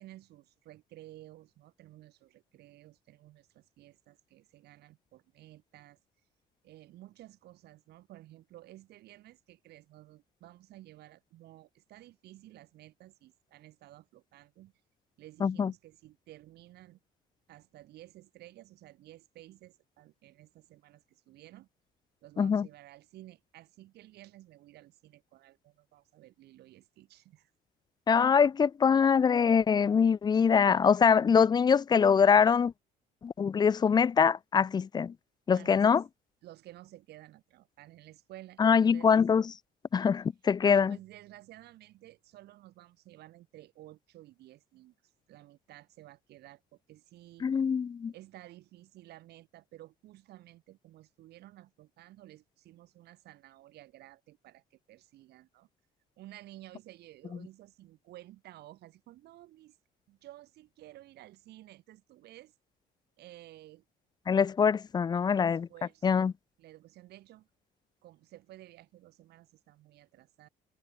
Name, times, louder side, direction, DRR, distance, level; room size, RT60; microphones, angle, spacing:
voice 1, 0.0-6.0 6.6-14.7 15.2-17.0 17.5-21.7 22.2-27.5 32.3-32.5 35.5-36.1 36.4-39.2 40.6-44.9 45.3-47.5 48.1-55.7 56.2-59.8 60.1-62.5 63.2-63.8 65.1-66.3 66.6-67.5 68.0-70.5, right 15 dB, 75° right, 3.6 m, -53 dB
voice 2, 15.4-15.7 22.4-22.7 28.1-32.7 33.2-35.1 35.5-36.0 38.6-39.4 39.9-41.0 47.4-48.1 64.3-65.7 66.0-66.3, left 6 dB, 25° left, 0.4 m, -24 dB
cardioid pair, 110°, 17 cm